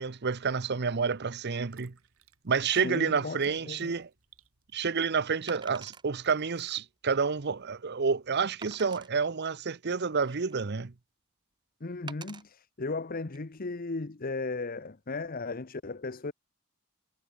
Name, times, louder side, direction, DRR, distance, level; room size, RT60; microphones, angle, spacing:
voice 1, 0.0-1.9 2.4-4.1 4.7-10.9, right 5 dB, 50° right, 0.8 m, -29 dB
sound 1, 1.5-6.8, right 7 dB, 90° right, 6.4 m, -63 dB
voice 2, 2.7-3.9 11.8-16.3, left 3 dB, 45° left, 0.9 m, -36 dB
Wood, 3.9-4.0 5.5-6.1 6.7-6.8 7.3-7.4 8.6-9.1 9.9-10.7 12.1-12.4 13.2-13.4, right 5 dB, 20° right, 0.7 m, -46 dB
head